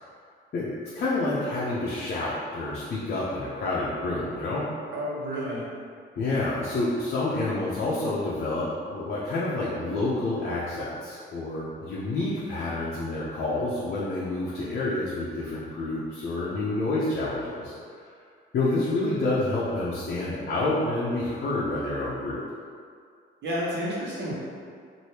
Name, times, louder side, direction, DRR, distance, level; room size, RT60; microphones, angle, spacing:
voice 1, 0.9-4.6 6.2-17.7 18.5-22.4, left 2 dB, 55° left, -7 dB, 0.6 m, -28 dB
voice 2, 4.9-5.6 23.4-24.3, equal, 60° right, -7 dB, 1.1 m, -30 dB
3.1 x 2.6 x 2.8 m, 2.2 s
cardioid pair, 90°, 20 cm